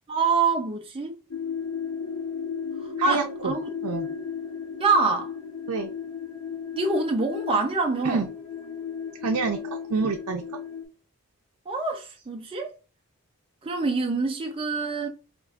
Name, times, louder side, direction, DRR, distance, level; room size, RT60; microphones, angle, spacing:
voice 1, 0.1-1.2 2.8-3.7 4.8-5.3 6.7-8.2 11.7-12.7 13.6-15.1, right 4 dB, 25° right, 0.4 m, -25 dB
sound 1, 1.3-10.9, left 7 dB, 60° left, 0.9 m, -35 dB
voice 2, 3.0-3.5 3.8-4.1 5.7-5.9 8.0-8.3 9.2-10.4, right 4 dB, 85° right, 0.5 m, -27 dB
4.5 x 2.4 x 2.4 m
head